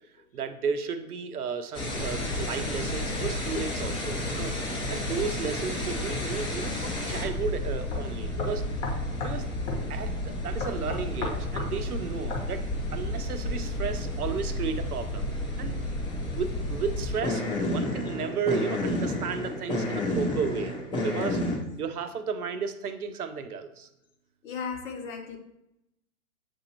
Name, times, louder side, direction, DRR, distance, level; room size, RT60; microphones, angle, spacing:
voice 1, 0.3-4.5 4.9-8.6 9.2-9.5 9.9-15.3 15.6-15.8 16.3-20.7 21.0-21.4 21.8-23.9, right 5 dB, 90° right, 9 dB, 0.6 m, -33 dB
sound 1, 1.7-21.6, left 1 dB, 10° left, 0.6 m, -31 dB
sound 2, 7.2-7.4 7.9-8.0 8.4-9.4 9.7-9.8 10.6-11.7 12.3-12.5, left 3 dB, 30° left, 0.9 m, -34 dB
voice 2, 24.4-25.4, left 5 dB, 65° left, 3 dB, 1.0 m, -35 dB
6.9 x 2.6 x 2.8 m, 0.83 s
hypercardioid pair, 120°, 43 cm